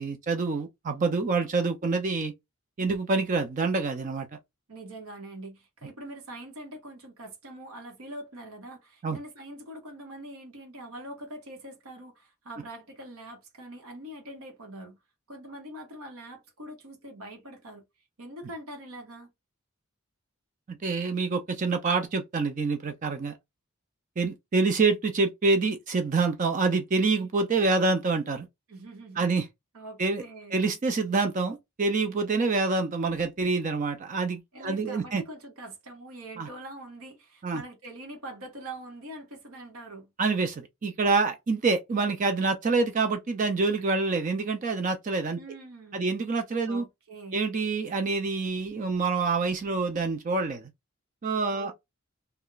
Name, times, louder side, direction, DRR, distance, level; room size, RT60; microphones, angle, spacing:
voice 1, 0.0-2.3 2.8-4.3 9.0-9.2 20.7-23.3 24.2-28.5 29.2-29.5 30.0-30.2 30.5-35.2 36.4-36.5 37.4-37.6 40.2-45.4 45.9-46.8 47.3-50.7 51.2-51.7, right 4 dB, 35° right, 0.4 m, -26 dB
voice 2, 4.7-15.0 15.3-17.9 18.2-19.3 28.7-29.4 29.7-30.6 34.5-40.1 45.4-46.1 46.7-47.4 51.5-51.7, right 1 dB, 80° right, 0.9 m, -43 dB
2.3 x 2.1 x 3.7 m
head